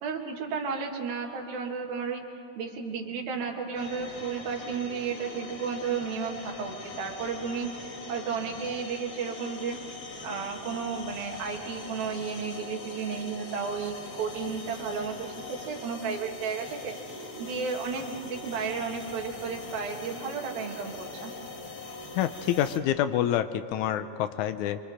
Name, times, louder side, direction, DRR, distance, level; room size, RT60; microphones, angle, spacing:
voice 1, 0.0-2.2 2.6-7.7 8.1-9.8 10.2-17.0 17.4-21.3, right 5 dB, 80° right, 1 dB, 3.7 m, -33 dB
sound 1, 3.7-22.8, left 3 dB, 65° left, 0.9 m, -41 dB
voice 2, 22.2-24.8, left 11 dB, 90° left, 10 dB, 1.7 m, -27 dB
26.5 x 24.5 x 5.0 m, 2.8 s
omnidirectional pair, 4.2 m